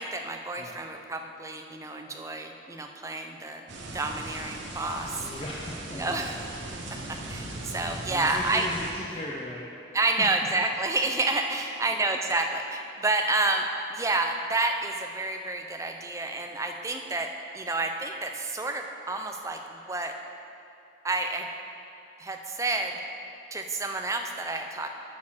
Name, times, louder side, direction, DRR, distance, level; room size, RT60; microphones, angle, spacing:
voice 1, 0.0-3.6 3.9-5.3 5.9-6.3 7.1-8.7 9.9-13.7 13.9-20.1 21.0-21.5 22.2-23.0 23.5-24.9, right 2 dB, 15° right, 4 dB, 0.5 m, -29 dB
sound 1, 3.7-8.9, right 2 dB, 75° right, 1.0 m, -39 dB
voice 2, 5.2-6.4 8.1-9.7 9.9-10.3 11.5-11.7, left 1 dB, 30° left, -4 dB, 0.6 m, -38 dB
7.3 x 6.6 x 6.2 m, 2.8 s
head